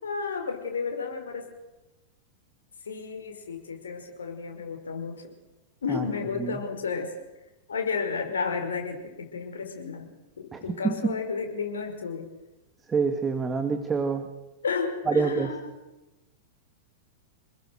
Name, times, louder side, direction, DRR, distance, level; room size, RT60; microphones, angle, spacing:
voice 1, 0.0-1.5 2.9-5.3 5.8-7.2 7.7-12.3 14.6-15.7, left 5 dB, 70° left, 5 dB, 5.4 m, -32 dB
voice 2, 10.5-11.1 12.9-14.2 15.1-15.5, right 5 dB, 15° right, 7 dB, 2.2 m, -26 dB
28.0 x 21.0 x 6.6 m, 1.0 s
figure-of-eight pair, 95°, 0 cm